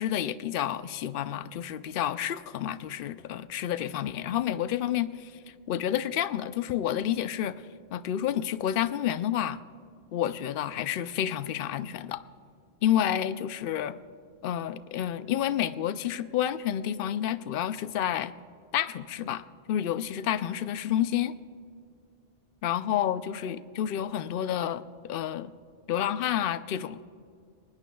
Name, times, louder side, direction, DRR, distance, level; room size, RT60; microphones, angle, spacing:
voice 1, 0.0-5.3 5.7-7.6 7.9-9.6 10.1-12.2 12.8-14.0 14.4-18.3 18.7-21.4 22.6-25.5 25.9-27.0, left 10 dB, 65° left, 14 dB, 0.7 m, -29 dB
21.0 x 19.5 x 2.3 m, 2.3 s
omnidirectional pair, 1.1 m